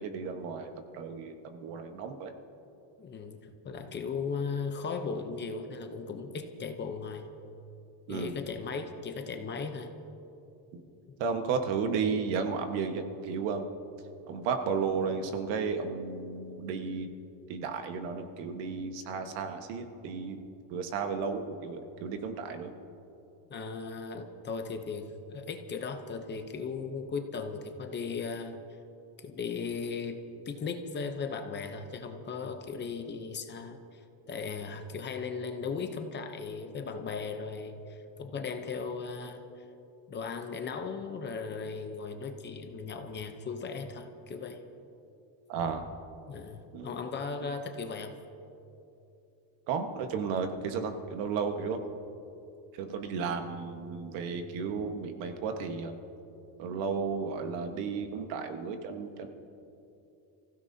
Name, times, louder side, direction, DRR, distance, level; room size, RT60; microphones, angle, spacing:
voice 1, 0.0-2.3 8.1-8.3 10.7-10.8 11.2-13.6 14.3-17.1 17.5-20.4 20.7-22.7 45.5-45.9 46.7-46.9 49.7-51.8 52.8-56.0 56.6-59.3, right 5 dB, 85° right, 6 dB, 1.5 m, -33 dB
voice 2, 3.0-7.3 8.1-9.9 11.1-11.2 23.5-28.6 29.2-34.0 34.3-39.4 40.1-44.6 46.3-48.1, left 5 dB, 25° left, 6 dB, 0.7 m, -37 dB
29.0 x 16.0 x 2.8 m, 2.8 s
cardioid pair, 175°, 45 cm